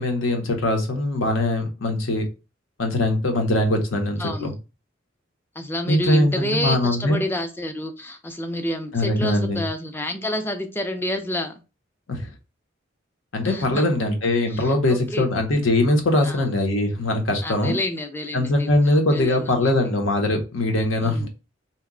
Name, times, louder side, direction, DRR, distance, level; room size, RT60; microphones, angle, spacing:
voice 1, 0.0-2.3 2.8-4.5 5.9-7.2 8.9-9.6 12.1-12.3 13.3-17.8 18.3-21.3, left 1 dB, 80° left, 0.8 m, -21 dB
voice 2, 4.2-4.5 5.6-11.5 13.4-13.9 14.5-15.2 16.2-16.5 17.4-19.7 21.0-21.3, left 1 dB, 10° left, 0.4 m, -29 dB
2.8 x 2.1 x 3.7 m
head